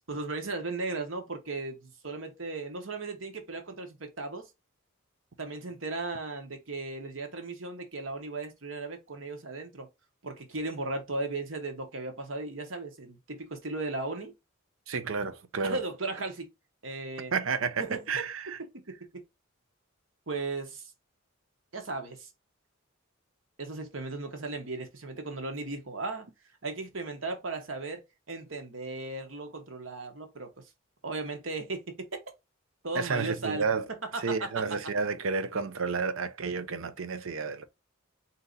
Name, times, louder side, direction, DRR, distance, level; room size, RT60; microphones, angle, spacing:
voice 1, 0.1-4.5 5.4-9.9 10.2-14.3 15.6-16.5 16.8-17.3 17.8-18.1 18.9-19.0 20.3-20.9 21.7-22.3 23.6-26.3 26.6-30.6 31.0-32.1 32.8-34.6, right 3 dB, 70° right, 1.2 m, -36 dB
voice 2, 14.9-15.8 17.3-18.6 32.9-33.9 34.2-37.7, right 5 dB, 85° right, 0.7 m, -31 dB
4.0 x 2.9 x 3.9 m
head